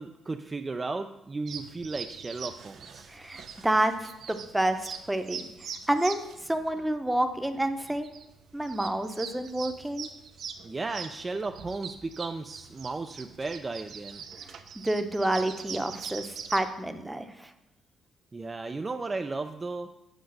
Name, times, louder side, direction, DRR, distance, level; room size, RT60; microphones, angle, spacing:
voice 1, 0.0-3.1 10.6-14.2 18.3-19.9, right 3 dB, 25° right, 6 dB, 0.5 m, -35 dB
sound 1, 1.5-16.6, right 6 dB, 65° right, 0.9 m, -43 dB
voice 2, 3.1-5.5 5.9-8.1 8.5-10.1 14.5-14.6 14.8-17.5, right 1 dB, 10° right, 7 dB, 0.9 m, -29 dB
8.1 x 5.2 x 6.4 m, 0.90 s
cardioid pair, 90°, 0 cm